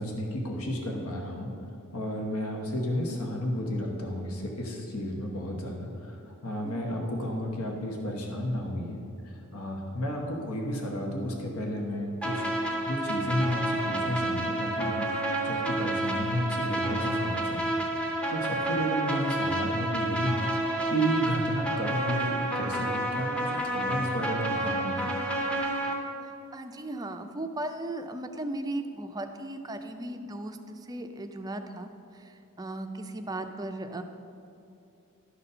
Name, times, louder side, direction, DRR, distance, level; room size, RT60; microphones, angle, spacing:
voice 1, 0.0-1.5 1.9-9.0 9.2-12.6 12.9-25.1, equal, 80° left, 0 dB, 1.1 m, -32 dB
voice 2, 6.6-7.1 26.5-34.0, right 1 dB, 15° right, 7 dB, 0.4 m, -37 dB
sound 1, 12.2-25.9, right 1 dB, 5° left, 0.7 m, -30 dB
11.5 x 4.1 x 5.5 m, 2.8 s
head